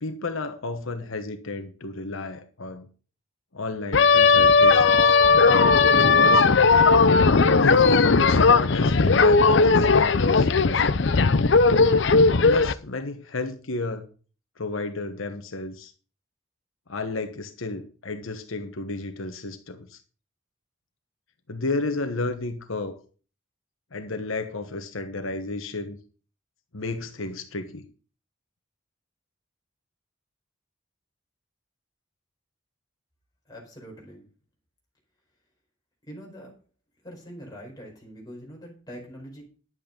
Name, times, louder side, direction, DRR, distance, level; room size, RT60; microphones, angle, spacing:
voice 1, 0.0-2.9 3.5-5.2 5.9-6.5 7.5-11.0 12.4-14.0 14.6-15.9 16.9-20.0 21.5-23.0 23.9-26.0 26.7-27.8, left 3 dB, 85° left, 7 dB, 1.2 m, -32 dB
sound 1, 3.9-12.7, left 4 dB, 60° left, 0.6 m, -17 dB
voice 2, 33.5-34.3 36.1-36.5 37.0-39.4, equal, 20° left, -2 dB, 4.9 m, -43 dB
11.0 x 8.5 x 5.3 m, 0.39 s
head